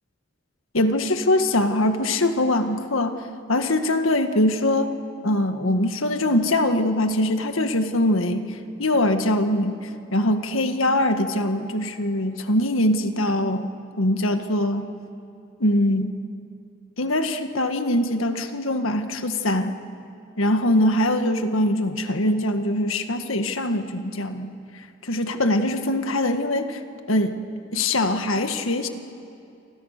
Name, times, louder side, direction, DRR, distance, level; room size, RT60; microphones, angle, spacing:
voice 1, 0.7-3.1 3.5-4.9 5.2-14.9 15.6-16.2 17.0-19.8 20.4-24.6 25.0-26.8 27.1-27.4 27.7-28.9, left 1 dB, 80° left, 7 dB, 1.8 m, -22 dB
29.5 x 25.5 x 6.7 m, 2.6 s
head